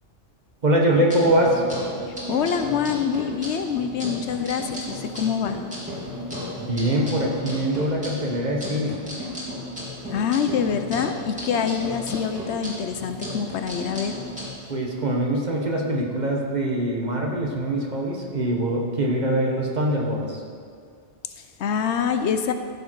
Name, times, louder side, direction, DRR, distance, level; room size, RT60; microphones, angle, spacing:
voice 1, 0.6-1.6 6.6-9.0 14.7-20.4, right 1 dB, 40° right, -1 dB, 1.4 m, -23 dB
sound 1, 0.9-14.5, left 1 dB, 5° right, 2.9 m, -34 dB
voice 2, 2.1-5.6 10.1-14.2 21.2-22.5, left 7 dB, 75° left, 8 dB, 0.9 m, -25 dB
14.0 x 6.4 x 4.6 m, 2.3 s
omnidirectional pair, 1.2 m